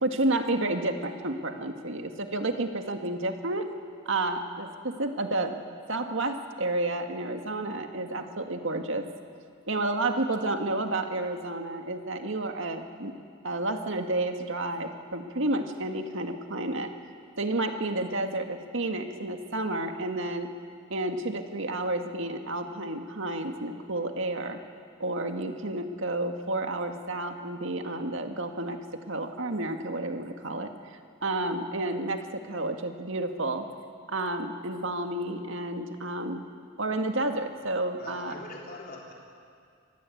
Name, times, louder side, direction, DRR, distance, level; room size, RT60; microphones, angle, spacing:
voice 1, 0.0-3.7 4.1-5.6 5.9-9.1 9.7-13.1 13.4-16.9 17.4-20.5 20.9-24.6 25.0-28.8 29.1-30.7 31.2-33.7 34.1-36.4 36.8-38.4, right 2 dB, 65° right, 5 dB, 2.0 m, -30 dB
voice 2, 37.9-39.1, left 2 dB, 45° left, -2 dB, 3.5 m, -43 dB
26.0 x 20.0 x 8.7 m, 2.2 s
head